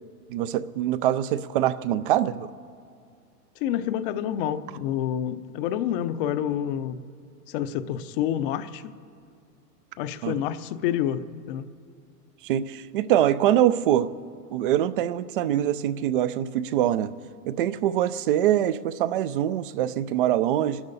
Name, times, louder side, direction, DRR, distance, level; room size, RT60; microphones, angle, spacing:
voice 1, 0.3-2.5 10.2-10.3 12.4-14.1 14.5-17.1 17.5-20.8, right 11 dB, 35° right, 0.4 m, -24 dB
voice 2, 3.6-7.0 7.5-8.9 10.0-11.7, left 10 dB, 35° left, 0.7 m, -28 dB
27.5 x 12.0 x 4.1 m
hypercardioid pair, 130°, 48 cm